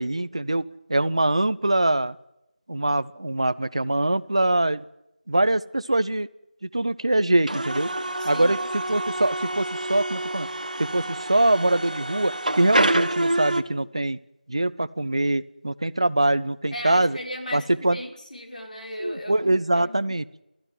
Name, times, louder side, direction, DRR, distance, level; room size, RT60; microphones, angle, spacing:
voice 1, 0.0-2.1 2.7-4.8 5.3-6.3 6.6-7.9 8.2-10.5 10.8-14.2 14.5-17.2 17.5-18.0 19.0-20.2, right 1 dB, 35° right, 15 dB, 0.8 m, -23 dB
sound 1, 7.5-13.6, right 1 dB, 55° right, 1.6 m, -27 dB
voice 2, 8.2-8.6 16.7-20.1, equal, 55° left, 1 dB, 5.6 m, -36 dB
29.5 x 14.0 x 9.4 m, 0.89 s
figure-of-eight pair, 180°, 5 cm